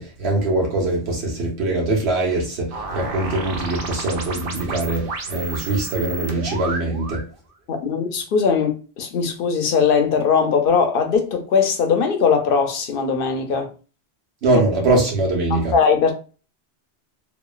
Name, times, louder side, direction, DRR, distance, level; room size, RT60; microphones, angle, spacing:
voice 1, 0.0-7.2 14.4-15.7, right 2 dB, 80° right, 1.2 m, -22 dB
sound 1, 2.7-7.3, right 3 dB, 65° right, 0.7 m, -32 dB
voice 2, 7.7-13.7 14.5-14.6 15.7-16.2, left 5 dB, 65° left, 0.7 m, -20 dB
2.9 x 2.2 x 2.3 m
omnidirectional pair, 1.1 m